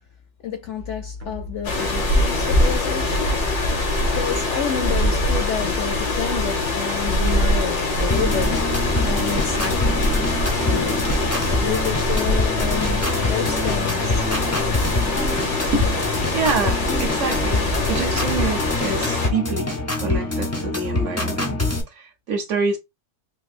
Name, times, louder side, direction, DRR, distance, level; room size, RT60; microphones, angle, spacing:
voice 1, 0.4-8.5 9.0-10.2 10.5-14.3, left 7 dB, 65° left, 0.7 m, -30 dB
sound 1, 0.8-6.7, left 3 dB, 90° right, 0.3 m, -36 dB
sound 2, 1.6-19.3, left 2 dB, 85° left, 1.4 m, -23 dB
sound 3, 8.1-21.8, left 2 dB, 20° left, 0.4 m, -26 dB
voice 2, 16.3-21.6 21.9-22.8, right 4 dB, 60° right, 0.9 m, -26 dB
3.9 x 2.5 x 2.5 m
omnidirectional pair, 1.6 m